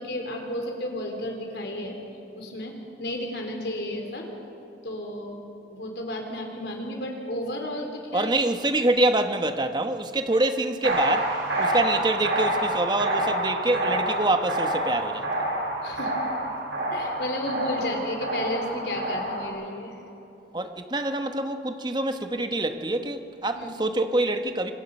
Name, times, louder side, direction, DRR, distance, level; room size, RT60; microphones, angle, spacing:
voice 1, 0.0-2.0 2.3-2.7 3.0-4.3 4.8-5.4 5.7-8.3 15.8-16.2 16.9-19.9 23.6-23.9, left 1 dB, 70° left, 2 dB, 3.6 m, -32 dB
voice 2, 8.1-11.3 11.6-15.5 20.5-24.7, right 2 dB, 25° right, 7 dB, 1.1 m, -25 dB
sound 1, 10.8-19.5, right 1 dB, 80° right, 6.9 m, -28 dB
26.0 x 21.5 x 5.5 m, 3.0 s
head